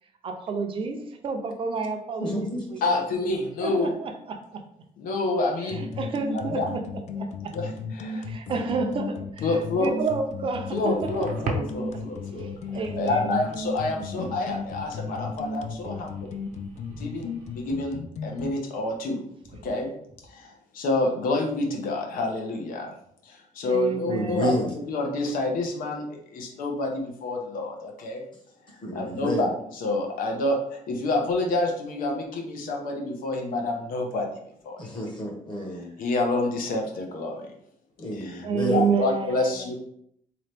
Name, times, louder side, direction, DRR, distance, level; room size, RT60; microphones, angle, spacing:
voice 1, 0.2-3.0 3.6-4.6 5.6-7.5 8.2-11.3 12.4-13.4 13.9-14.1 16.9-17.0 23.6-24.8 38.4-39.7, right 5 dB, 40° right, 0.5 m, -30 dB
voice 2, 2.2-2.8 24.1-24.7 28.8-29.5 34.8-36.0 38.0-38.9, equal, 35° left, 1.0 m, -29 dB
voice 3, 2.8-4.0 5.0-5.9 6.3-6.7 7.5-8.3 9.4-9.9 10.7-12.5 12.9-16.3 17.0-19.2 19.6-19.9 20.2-22.9 23.2-28.2 28.9-34.3 34.6-34.8 36.0-37.5 38.1-39.7, left 2 dB, 90° left, 0.8 m, -28 dB
sound 1, 5.7-18.5, left 4 dB, 55° left, 0.4 m, -35 dB
sound 2, 9.5-17.7, right 3 dB, 75° right, 0.8 m, -41 dB
3.8 x 2.9 x 3.3 m
cardioid pair, 165°, 14 cm